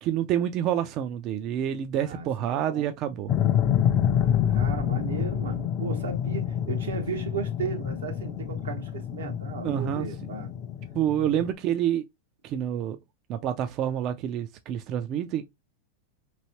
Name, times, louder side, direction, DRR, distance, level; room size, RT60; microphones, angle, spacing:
voice 1, 0.0-3.3 9.6-10.1 11.0-12.0 12.4-13.0 13.3-15.4, right 10 dB, 45° right, 0.3 m, -28 dB
voice 2, 2.0-2.9 4.5-10.5 11.3-11.5, right 6 dB, 85° right, 0.9 m, -35 dB
sound 1, 3.3-11.5, left 9 dB, 40° left, 0.4 m, -27 dB
3.0 x 2.7 x 2.8 m
hypercardioid pair, 105°, 0 cm